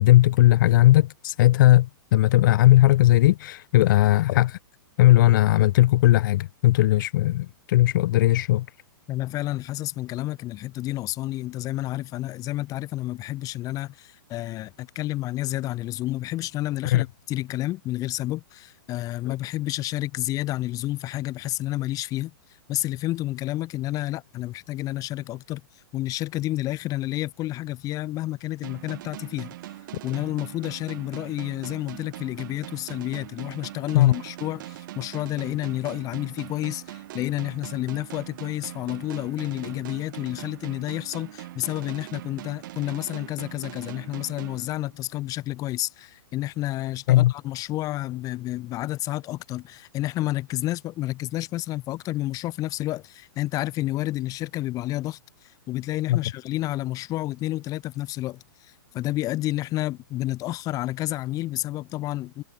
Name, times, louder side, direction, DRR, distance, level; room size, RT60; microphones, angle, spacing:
voice 1, 0.0-4.6 5.0-8.7 16.9-17.0 33.9-34.1 47.1-47.3 56.1-56.2, left 15 dB, 55° left, 2.4 m, -18 dB
voice 2, 9.1-22.3 22.7-25.6 25.9-29.6 30.0-62.4, left 16 dB, 25° left, 3.5 m, -30 dB
sound 1, 28.6-45.2, right 15 dB, 55° right, 3.5 m, -41 dB
hypercardioid pair, 145°, 13 cm